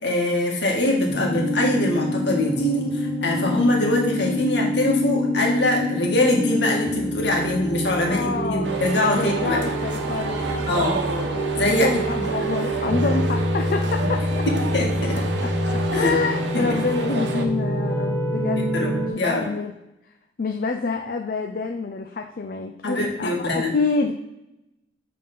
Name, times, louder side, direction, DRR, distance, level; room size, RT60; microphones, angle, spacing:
voice 1, 0.0-9.6 10.7-11.0 11.5-12.2 14.7-15.2 15.9-16.1 16.5-16.6 18.7-19.4 22.8-23.7, left 1 dB, 65° left, -1 dB, 1.9 m, -23 dB
sound 1, 1.1-19.1, equal, 15° left, 1.3 m, -26 dB
voice 2, 8.0-8.7 9.1-10.9 11.7-14.5 15.4-19.7 20.4-24.1, left 4 dB, 50° left, 4 dB, 0.5 m, -27 dB
sound 2, 8.6-17.4, right 2 dB, 75° right, 1.0 m, -30 dB
7.6 x 3.8 x 5.5 m, 0.89 s
head